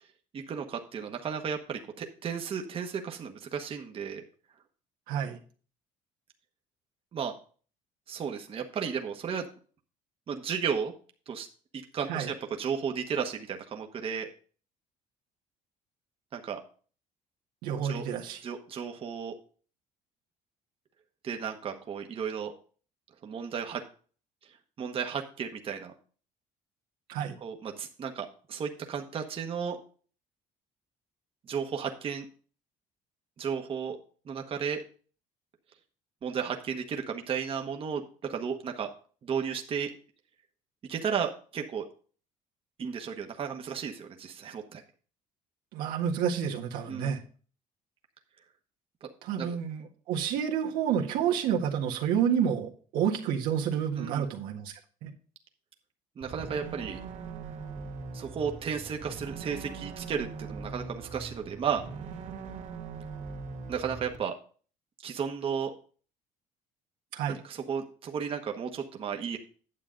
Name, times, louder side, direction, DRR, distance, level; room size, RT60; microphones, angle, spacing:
voice 1, 0.3-4.2 7.1-7.3 8.1-9.5 10.3-10.9 11.3-11.5 11.7-14.3 16.3-16.6 17.8-18.0 18.4-19.4 21.2-22.5 23.2-23.8 24.8-25.9 27.4-29.8 31.5-32.3 33.4-34.0 34.3-34.8 36.2-38.9 39.2-39.9 40.9-41.9 42.8-44.8 46.9-47.1 49.0-49.1 49.4-49.6 53.9-54.3 56.2-57.0 58.1-61.8 63.7-64.3 65.0-65.7 67.3-69.4, right 7 dB, 40° right, 4 dB, 1.2 m, -34 dB
voice 2, 5.1-5.4 12.1-12.3 17.6-18.4 27.1-27.4 45.7-47.2 49.2-55.1 67.1-67.4, right 8 dB, 85° right, 1 dB, 1.6 m, -29 dB
sound 1, 56.2-64.2, right 5 dB, 60° right, 2.2 m, -41 dB
9.7 x 7.3 x 3.8 m, 0.40 s
cardioid pair, 120°, 14 cm